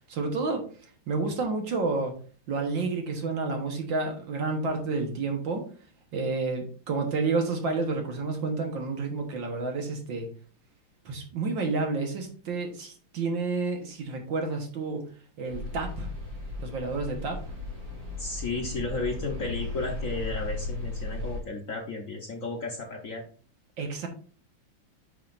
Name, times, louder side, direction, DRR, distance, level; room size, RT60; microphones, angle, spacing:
voice 1, 0.1-2.1 2.5-5.6 6.1-10.3 11.1-15.0 15.4-16.1 16.6-17.4 23.8-24.1, right 3 dB, 60° right, 3 dB, 1.9 m, -30 dB
sound 1, 15.5-21.4, left 2 dB, 90° right, 3.8 m, -36 dB
voice 2, 18.2-23.2, left 3 dB, 50° left, 1 dB, 1.1 m, -33 dB
9.9 x 5.7 x 2.6 m, 0.42 s
omnidirectional pair, 2.4 m